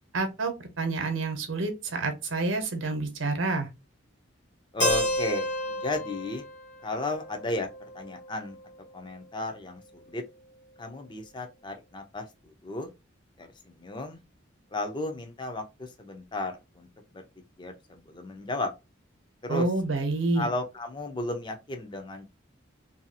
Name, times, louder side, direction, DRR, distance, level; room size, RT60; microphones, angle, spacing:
voice 1, 0.1-3.7 19.5-20.5, right 3 dB, 80° right, 0.8 m, -28 dB
voice 2, 4.7-6.4 6.8-7.7 7.9-8.6 8.9-10.2 10.8-12.9 13.4-14.2 14.7-16.9 17.1-17.2 17.6-18.7 19.4-19.7 20.3-22.3, left 2 dB, 25° left, 0.5 m, -34 dB
Keyboard (musical), 4.8-8.7, equal, 40° left, 1.0 m, -31 dB
2.7 x 2.3 x 2.6 m
head